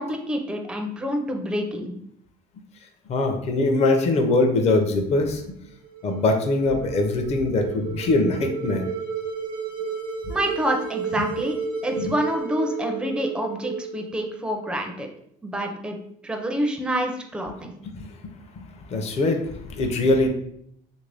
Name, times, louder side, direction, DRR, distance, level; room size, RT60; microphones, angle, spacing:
voice 1, 0.0-1.9 10.3-11.6 11.8-15.1 15.4-16.0 16.2-17.7, equal, 5° right, 3 dB, 0.4 m, -27 dB
voice 2, 3.1-5.5 6.0-8.9 10.2-10.3 11.2-11.3 12.0-12.1 17.8-18.2 18.5-20.3, left 2 dB, 40° left, 5 dB, 0.5 m, -22 dB
sound 1, 5.7-14.9, right 5 dB, 75° right, 0.6 m, -33 dB
3.2 x 2.6 x 3.3 m, 0.72 s
cardioid pair, 125°, 16 cm